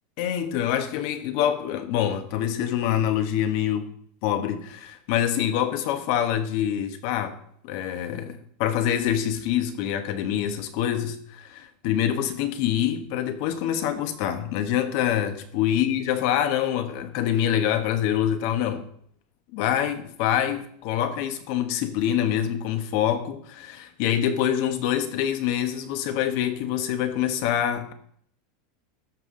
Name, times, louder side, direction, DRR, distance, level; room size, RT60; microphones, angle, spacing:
voice 1, 0.2-3.9 4.2-7.4 7.6-18.9 19.5-27.9, left 10 dB, 60° left, 1.1 m, -25 dB
13.5 x 5.6 x 3.8 m
supercardioid pair, 135°, 0 cm